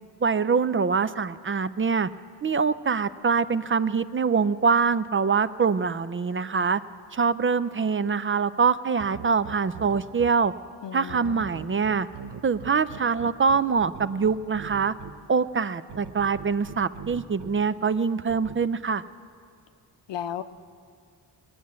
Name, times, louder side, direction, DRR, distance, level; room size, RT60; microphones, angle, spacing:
voice 1, 0.2-2.1 2.4-6.8 7.1-10.5 10.9-12.1 12.4-14.9 15.3-19.0, right 5 dB, 30° right, 15 dB, 0.4 m, -24 dB
sound 1, 9.0-10.3 11.1-15.1 15.9-17.5 18.3-18.6, right 7 dB, 75° right, 0.9 m, -40 dB
voice 2, 10.8-11.6 20.1-20.4, left 10 dB, 85° left, 10 dB, 0.7 m, -35 dB
20.5 x 9.4 x 7.4 m, 2.2 s
wide cardioid pair, 95°, 42 cm